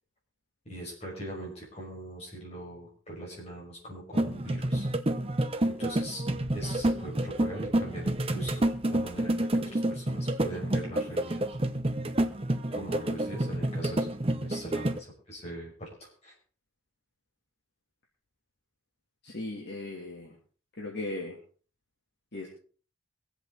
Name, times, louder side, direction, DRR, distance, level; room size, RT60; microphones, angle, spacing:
voice 1, 0.6-4.9 5.6-6.2 6.5-11.4 12.7-16.3, right 1 dB, 30° left, -3 dB, 6.0 m, -41 dB
sound 1, 4.1-15.0, right 1 dB, 30° right, 0.8 m, -29 dB
voice 2, 19.2-20.4 20.8-21.4 22.3-22.5, left 2 dB, 55° left, -3 dB, 2.9 m, -37 dB
23.5 x 8.1 x 4.1 m, 0.40 s
head